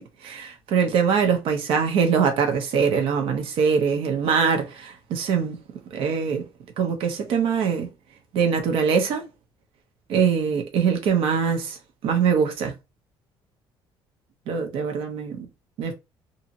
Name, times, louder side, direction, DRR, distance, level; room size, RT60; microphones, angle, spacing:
voice 1, 0.0-5.6 5.9-6.4 6.8-7.9 8.3-9.3 10.1-11.8 12.0-12.7 14.5-15.5 15.8-15.9, right 6 dB, 75° right, 0.8 m, -23 dB
2.8 x 2.7 x 2.6 m
cardioid pair, 105°, 9 cm